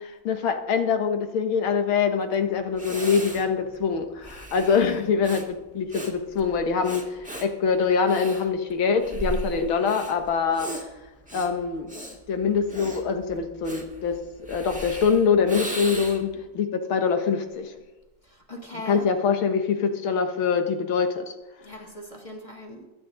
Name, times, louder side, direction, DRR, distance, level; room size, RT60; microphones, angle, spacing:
voice 1, 0.0-10.7 11.3-11.9 12.3-14.2 14.5-17.7 18.9-21.3, left 6 dB, 75° left, 6 dB, 2.0 m, -24 dB
Breathing, 2.3-2.4 2.7-16.4, right 1 dB, 5° right, 1.5 m, -37 dB
voice 2, 18.2-19.1 21.6-22.9, left 1 dB, 15° left, 1 dB, 2.0 m, -39 dB
21.5 x 9.0 x 3.9 m, 1.1 s
omnidirectional pair, 2.3 m